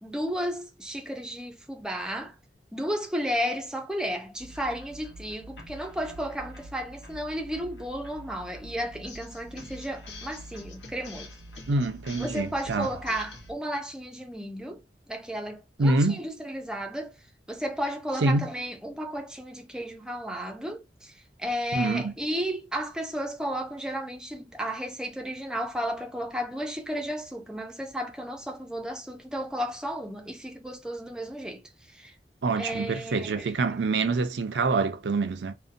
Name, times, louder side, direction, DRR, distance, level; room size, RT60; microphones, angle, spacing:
voice 1, 0.0-2.4 2.7-11.3 12.2-17.2 17.5-32.1 32.6-33.5, equal, 5° right, 0.5 m, -33 dB
sound 1, 4.4-13.5, equal, 85° left, 0.8 m, -45 dB
voice 2, 11.7-12.9 15.8-16.2 18.2-18.5 21.7-22.1 32.4-35.5, right 3 dB, 80° right, 0.5 m, -26 dB
2.7 x 2.1 x 2.5 m
head